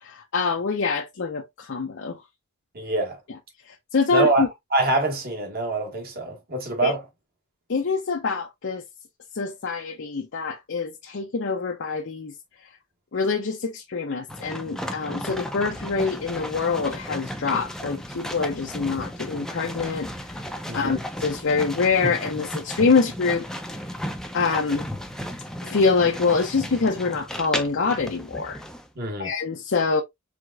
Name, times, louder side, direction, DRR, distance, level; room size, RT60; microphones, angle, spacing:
voice 1, 0.0-2.2 3.9-4.5 6.8-6.9 7.7-8.8 9.3-12.3 13.1-20.1 20.7-23.5 24.3-24.9 25.6-28.6 29.2-30.0, left 4 dB, 55° left, 0.6 m, -25 dB
voice 2, 2.7-3.2 4.1-4.5 4.7-7.0 20.7-21.0 28.9-29.3, right 2 dB, 45° right, 1.4 m, -25 dB
sound 1, 14.3-28.9, equal, 5° left, 0.5 m, -34 dB
4.9 x 3.6 x 2.3 m
head